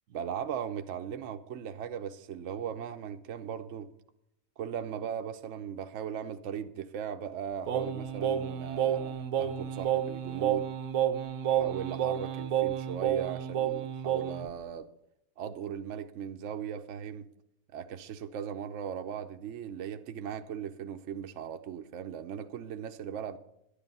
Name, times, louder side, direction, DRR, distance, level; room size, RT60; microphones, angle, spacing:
voice 1, 0.1-3.9 4.6-10.7 11.4-14.9 15.4-17.3 17.7-23.4, right 8 dB, 70° right, 0.9 m, -38 dB
Singing, 7.7-14.5, right 9 dB, 85° right, 1.2 m, -30 dB
12.0 x 10.0 x 5.4 m
omnidirectional pair, 1.4 m